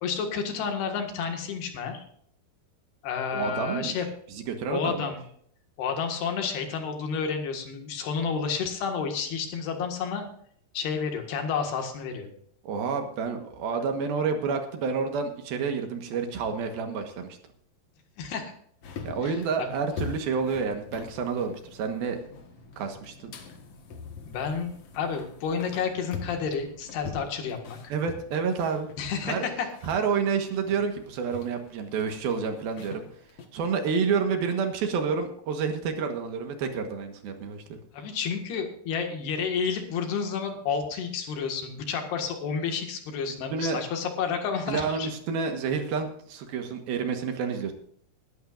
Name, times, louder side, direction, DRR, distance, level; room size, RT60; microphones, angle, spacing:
voice 1, 0.0-2.0 3.0-4.1 4.7-5.2 5.8-10.3 10.7-12.3 18.2-18.5 19.2-19.7 24.3-27.9 29.0-29.7 37.9-45.1, left 6 dB, 75° left, 4 dB, 3.8 m, -30 dB
voice 2, 3.3-3.9 4.3-5.1 12.6-17.4 19.0-22.2 22.8-23.3 27.9-28.9 29.3-29.5 29.8-33.0 33.5-37.6 43.5-43.8 44.7-47.7, right 5 dB, 70° right, 5 dB, 3.1 m, -29 dB
sound 1, 18.8-33.5, left 5 dB, 55° left, 1.8 m, -43 dB
21.0 x 11.5 x 2.5 m, 0.63 s
omnidirectional pair, 4.7 m